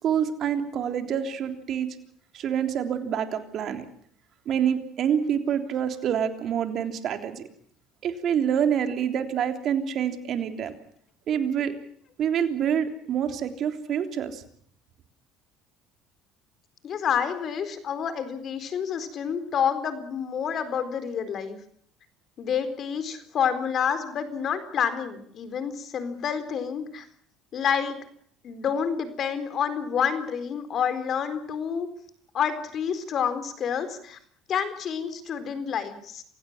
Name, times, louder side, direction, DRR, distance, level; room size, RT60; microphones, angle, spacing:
voice 1, 0.0-1.9 2.3-3.9 4.4-7.4 8.0-10.7 11.3-11.7 12.2-14.4, right 8 dB, 55° right, 7 dB, 3.4 m, -27 dB
voice 2, 16.8-21.6 22.4-27.1 27.5-28.0 28.4-31.9 32.3-34.2 34.5-36.2, left 7 dB, 50° left, 11 dB, 4.1 m, -28 dB
28.0 x 16.5 x 7.4 m, 0.63 s
supercardioid pair, 85°, 0 cm